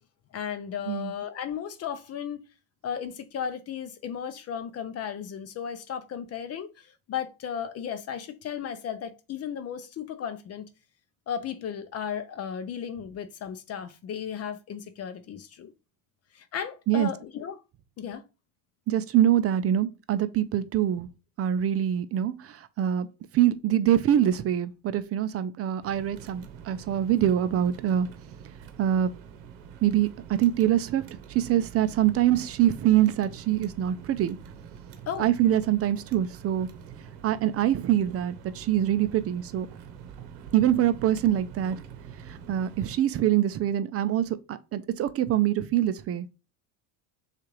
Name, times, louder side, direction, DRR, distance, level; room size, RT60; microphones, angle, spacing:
voice 1, 0.3-2.4 2.8-10.7 11.3-15.7 16.3-17.6 18.0-18.2 35.1-35.3, left 8 dB, 40° left, 0.5 m, -35 dB
voice 2, 18.9-21.1 21.4-23.1 23.3-28.1 28.8-29.1 29.8-31.0 31.3-34.4 35.2-36.7 37.2-39.7 40.5-41.8 42.3-46.3, right 11 dB, 40° right, 0.4 m, -24 dB
sound 1, 25.8-43.0, right 7 dB, 85° right, 0.8 m, -45 dB
6.4 x 2.5 x 3.1 m
cardioid pair, 110°, 38 cm